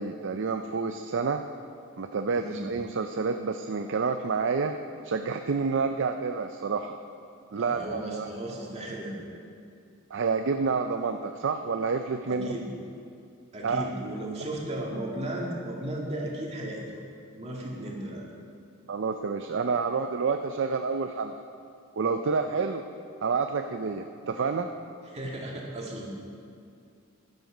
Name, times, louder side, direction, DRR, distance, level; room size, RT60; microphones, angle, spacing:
voice 1, 0.0-1.4 2.0-4.7 5.0-7.0 7.5-8.3 10.1-12.5 13.6-13.9 18.9-21.4 22.0-22.8 23.2-24.7, right 5 dB, 60° right, 6 dB, 0.5 m, -28 dB
voice 2, 7.5-9.2 12.3-12.7 13.5-16.8 17.3-18.2 25.1-26.2, right 1 dB, 30° right, -2 dB, 2.1 m, -35 dB
12.5 x 10.5 x 5.0 m, 2.4 s
head